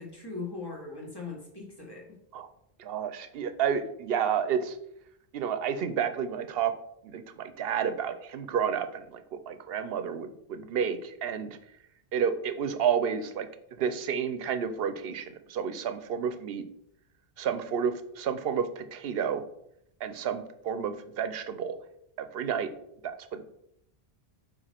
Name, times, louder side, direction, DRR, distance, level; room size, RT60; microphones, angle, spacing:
voice 1, 0.0-2.2, left 4 dB, 25° left, -2 dB, 1.4 m, -40 dB
voice 2, 2.8-4.8 5.3-6.7 7.0-11.6 12.1-16.6 17.4-19.4 20.0-21.8 22.2-22.7 23.0-23.5, right 7 dB, 75° right, 10 dB, 0.8 m, -30 dB
4.9 x 4.5 x 4.3 m, 0.76 s
omnidirectional pair, 1.0 m